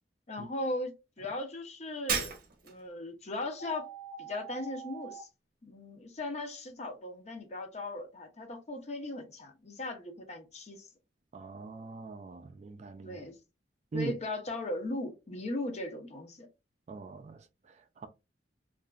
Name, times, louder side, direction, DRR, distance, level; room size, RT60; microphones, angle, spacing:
voice 1, 0.3-2.4 2.6-3.9 4.2-5.3 5.6-10.9 13.0-13.3 13.9-16.5, left 2 dB, 40° left, 0.6 m, -38 dB
Shatter, 2.1-2.9, right 5 dB, 55° right, 0.7 m, -33 dB
sound 1, 3.6-5.2, right 7 dB, 60° left, 1.2 m, -45 dB
voice 2, 11.3-13.2 13.9-14.1 16.9-18.1, right 4 dB, 40° right, 0.3 m, -41 dB
2.9 x 2.5 x 2.3 m
head